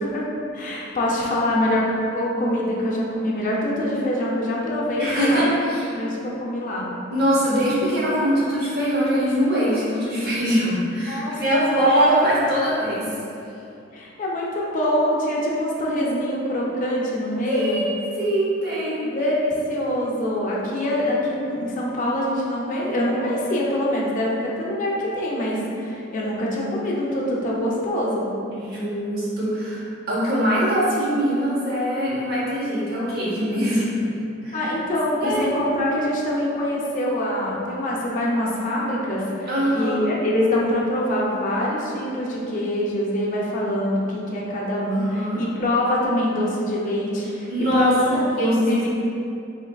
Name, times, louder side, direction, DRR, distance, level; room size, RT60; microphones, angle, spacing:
voice 1, 0.5-5.6 5.9-6.9 11.1-11.9 13.9-17.8 19.0-28.2 34.5-48.9, left 1 dB, 40° left, -4 dB, 0.4 m, -24 dB
voice 2, 5.0-6.0 7.1-13.1 17.5-19.0 28.5-34.1 34.4-34.7 35.2-35.6 39.5-40.0 44.9-45.4 47.5-48.6, equal, 55° right, -8 dB, 0.8 m, -22 dB
3.2 x 2.3 x 2.2 m, 2.6 s
head